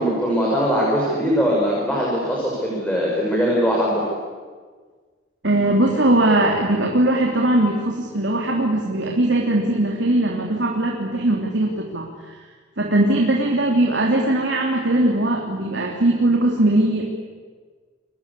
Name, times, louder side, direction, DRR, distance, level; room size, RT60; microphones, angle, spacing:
voice 1, 0.0-4.0, equal, 5° left, -4 dB, 6.2 m, -21 dB
voice 2, 5.4-12.4 12.8-17.0, right 1 dB, 70° right, 0 dB, 3.3 m, -20 dB
29.0 x 24.0 x 8.5 m, 1.5 s
head